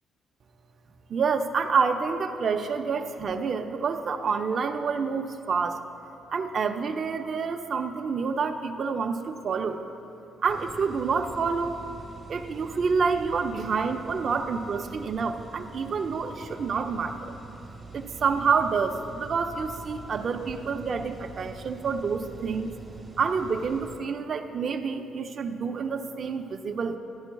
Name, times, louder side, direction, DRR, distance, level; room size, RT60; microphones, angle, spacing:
voice 1, 1.1-5.8 6.3-9.8 10.4-11.8 12.3-17.3 17.9-22.7 23.2-27.0, right 5 dB, 45° right, 5 dB, 0.4 m, -28 dB
sound 1, 10.5-24.0, right 3 dB, 25° right, 1.1 m, -44 dB
12.0 x 10.0 x 2.3 m, 2.7 s
cardioid pair, 115°, 0 cm